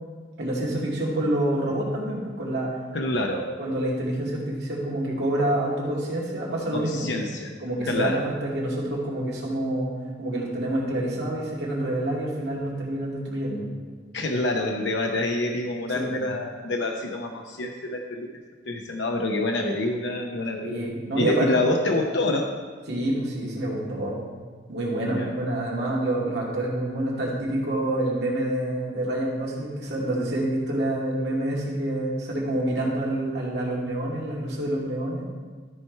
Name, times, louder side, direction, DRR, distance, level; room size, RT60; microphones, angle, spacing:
voice 1, 0.4-2.7 3.0-7.2 7.6-9.9 10.2-13.7 15.9-16.2 20.6-21.5 22.9-24.2 24.7-35.3, right 1 dB, 65° right, -4 dB, 2.2 m, -27 dB
voice 2, 2.9-3.4 6.7-7.5 7.8-8.2 14.1-18.3 18.6-20.8 21.2-22.5 25.0-25.3, left 2 dB, 80° left, 2 dB, 0.7 m, -27 dB
13.0 x 4.6 x 4.5 m, 1.5 s
head